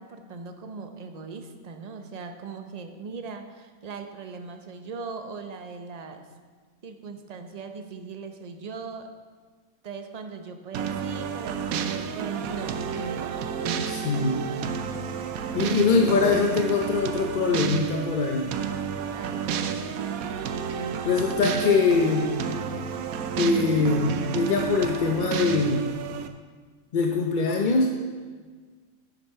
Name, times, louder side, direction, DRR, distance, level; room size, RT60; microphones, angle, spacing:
voice 1, 0.0-6.2 6.8-9.1 9.8-13.4 19.1-19.9, right 4 dB, 35° right, 6 dB, 0.7 m, -39 dB
sound 1, 10.7-26.3, right 7 dB, 80° right, 1.1 m, -30 dB
voice 2, 13.9-14.4 15.5-18.5 21.0-22.4 23.4-25.8 26.9-27.9, left 4 dB, 45° left, 2 dB, 0.7 m, -23 dB
10.0 x 8.1 x 5.6 m, 1.5 s
omnidirectional pair, 1.5 m